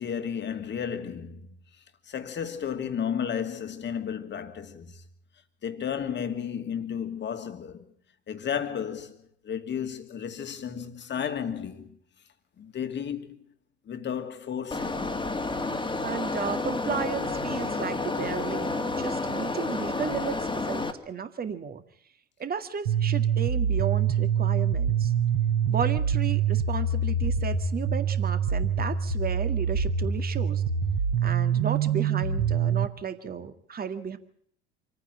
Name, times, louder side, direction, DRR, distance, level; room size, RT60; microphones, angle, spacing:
voice 1, 0.0-1.5 1.8-5.0 5.6-7.9 8.3-12.0 12.6-13.4 13.9-15.1, left 8 dB, 30° left, 2.4 m, -33 dB
sound 1, 14.7-20.9, left 3 dB, 15° left, 2.4 m, -30 dB
voice 2, 16.0-21.8 22.4-25.1 25.7-30.6 31.2-34.2, right 7 dB, 25° right, 2.0 m, -34 dB
sound 2, 22.9-32.9, right 7 dB, 65° right, 4.3 m, -25 dB
27.5 x 9.7 x 9.9 m
figure-of-eight pair, 65°, 34 cm